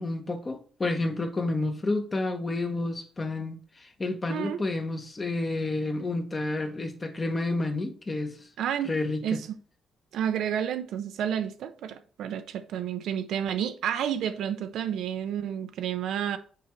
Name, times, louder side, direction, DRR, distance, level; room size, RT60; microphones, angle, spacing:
voice 1, 0.0-8.4 8.8-9.4, left 2 dB, 25° left, 1.1 m, -30 dB
voice 2, 8.6-8.9 9.2-9.5 10.1-16.4, right 9 dB, 80° right, 0.5 m, -30 dB
6.7 x 4.6 x 3.1 m
cardioid pair, 90°, 0 cm